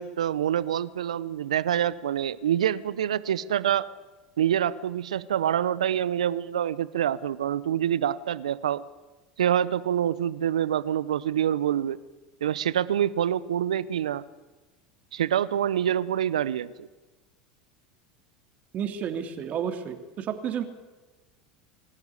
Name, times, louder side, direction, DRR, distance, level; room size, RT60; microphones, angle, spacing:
voice 1, 0.0-3.9 4.4-8.8 9.4-12.0 12.4-14.2 15.1-16.9, right 10 dB, 85° right, 18 dB, 0.8 m, -26 dB
voice 2, 18.7-20.6, right 8 dB, 45° right, 7 dB, 3.0 m, -31 dB
25.5 x 13.0 x 9.8 m, 1.2 s
hypercardioid pair, 85°, 3 cm